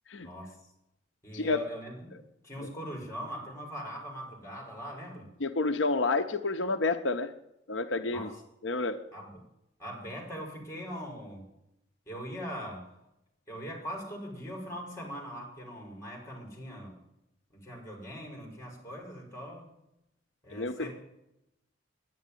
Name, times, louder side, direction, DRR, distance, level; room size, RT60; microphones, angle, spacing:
voice 1, 0.2-0.6 1.2-2.2 2.4-5.3 8.1-8.4 9.1-9.4 9.8-11.4 12.1-12.9 13.5-16.9 17.5-19.7 20.4-21.0, equal, 15° left, 2 dB, 5.0 m, -41 dB
voice 2, 5.4-7.3 7.7-8.3 8.6-9.0 20.5-20.9, left 3 dB, 85° left, 7 dB, 0.9 m, -29 dB
10.5 x 10.0 x 9.8 m, 0.87 s
head